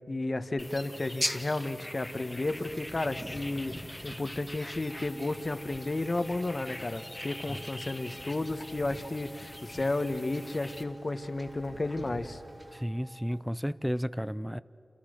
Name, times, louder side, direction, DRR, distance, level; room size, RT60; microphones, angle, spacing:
voice 1, 0.1-12.4, left 2 dB, 45° left, 1.3 m, -33 dB
sound 1, 0.6-10.8, left 1 dB, 15° left, 1.6 m, -41 dB
Wind / Ocean / Boat Water vehicle, 2.5-12.8, right 1 dB, 25° right, 3.1 m, -49 dB
sound 2, 4.8-13.4, right 1 dB, 85° right, 3.8 m, -55 dB
voice 2, 12.7-14.6, equal, 5° right, 0.5 m, -33 dB
30.0 x 28.5 x 6.6 m
cardioid pair, 50°, 0 cm